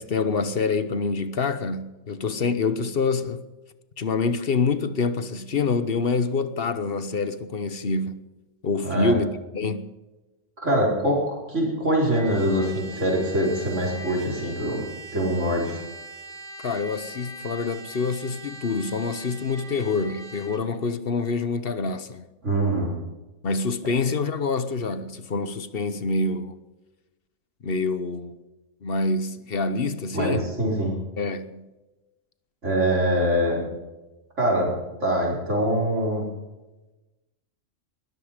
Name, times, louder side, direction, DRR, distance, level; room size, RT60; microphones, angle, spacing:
voice 1, 0.0-3.4 4.0-8.2 8.6-9.9 16.6-22.2 23.4-26.6 27.6-28.4 28.8-30.5 31.2-31.7, left 4 dB, 50° left, 1.1 m, -26 dB
voice 2, 10.6-14.8 15.1-15.8 22.4-22.9 30.1-31.0 32.6-33.6 34.4-34.7 35.0-36.2, right 1 dB, 65° right, 5.2 m, -23 dB
Trumpet, 12.1-20.6, right 2 dB, 40° right, 1.9 m, -41 dB
20.0 x 13.5 x 5.1 m
omnidirectional pair, 1.3 m